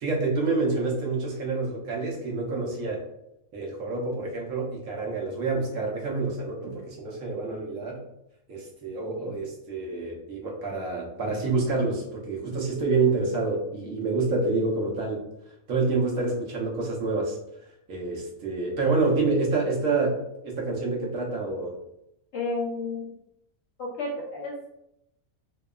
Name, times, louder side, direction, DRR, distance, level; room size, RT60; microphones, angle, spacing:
voice 1, 0.0-3.0 3.5-8.0 8.5-15.2 15.7-21.8, right 3 dB, 65° right, -2 dB, 1.0 m, -28 dB
voice 2, 22.3-23.1 23.8-24.5, left 2 dB, 55° left, -3 dB, 0.9 m, -31 dB
2.8 x 2.2 x 2.2 m, 0.80 s
omnidirectional pair, 1.6 m